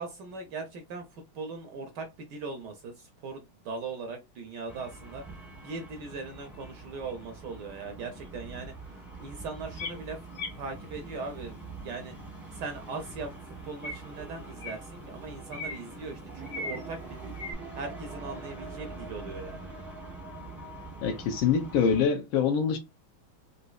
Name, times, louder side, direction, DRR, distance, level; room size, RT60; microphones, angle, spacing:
voice 1, 0.0-10.2 10.6-11.6 11.8-12.1 12.5-17.3 17.7-19.8, right 4 dB, 75° right, 1.0 m, -40 dB
sound 1, 4.7-22.1, right 3 dB, ahead, 0.5 m, -44 dB
sound 2, 9.8-9.9 10.4-10.5 13.8-14.0 14.6-14.8 15.5-15.8 16.5-16.8 17.4-17.5, left 2 dB, 55° left, 0.9 m, -36 dB
voice 2, 21.0-22.8, left 7 dB, 80° left, 1.3 m, -25 dB
4.0 x 2.7 x 2.3 m
omnidirectional pair, 2.3 m